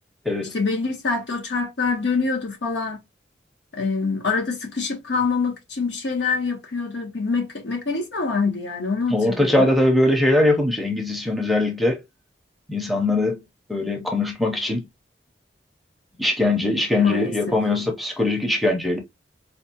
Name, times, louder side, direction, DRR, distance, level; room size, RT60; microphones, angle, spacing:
voice 1, 0.5-3.0 3.7-9.7 17.0-17.6, left 4 dB, 75° left, 1.1 m, -25 dB
voice 2, 9.1-12.0 12.7-13.4 13.7-14.8 16.2-19.0, left 2 dB, ahead, 0.6 m, -21 dB
4.4 x 2.3 x 2.8 m
head